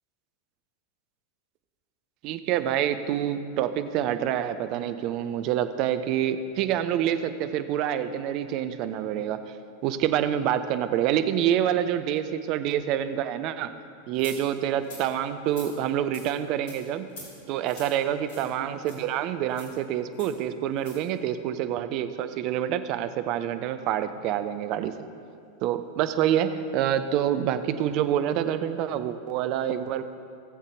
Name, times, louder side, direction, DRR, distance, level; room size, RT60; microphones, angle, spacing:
voice 1, 2.2-9.4 9.8-13.7 14.1-17.1 17.5-24.9 25.6-30.0, right 10 dB, 40° right, 10 dB, 0.5 m, -27 dB
sound 1, 14.2-14.4 14.8-15.0 15.5-15.7 16.1-16.3 16.7-16.8 17.1-17.3 17.6-17.9 18.3-18.5 18.8-19.0 19.5-19.7 20.2-20.3 20.8-21.0, left 2 dB, 50° left, 3.0 m, -44 dB
18.0 x 7.4 x 3.3 m, 2.4 s
figure-of-eight pair, 90°, 0 cm